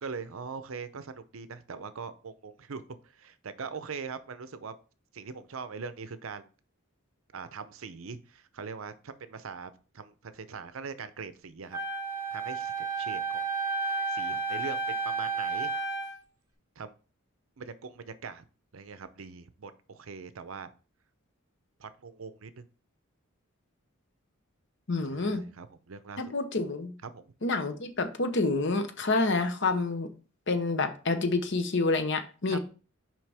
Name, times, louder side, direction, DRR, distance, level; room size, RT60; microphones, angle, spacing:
voice 1, 0.0-4.7 5.1-6.5 7.3-11.8 12.3-13.4 13.8-15.7 16.8-16.9 17.6-18.4 18.7-20.7 21.8-22.6 25.1-26.2 27.0-27.3 32.5-32.6, right 5 dB, 70° right, 12 dB, 0.6 m, -42 dB
Wind instrument woodwind instrument, 11.7-16.2, right 3 dB, 20° right, 1.9 m, -32 dB
voice 2, 24.9-25.4 26.2-26.9 27.4-30.1 30.5-32.6, left 3 dB, 60° left, 8 dB, 0.9 m, -28 dB
6.2 x 4.9 x 3.4 m, 0.36 s
head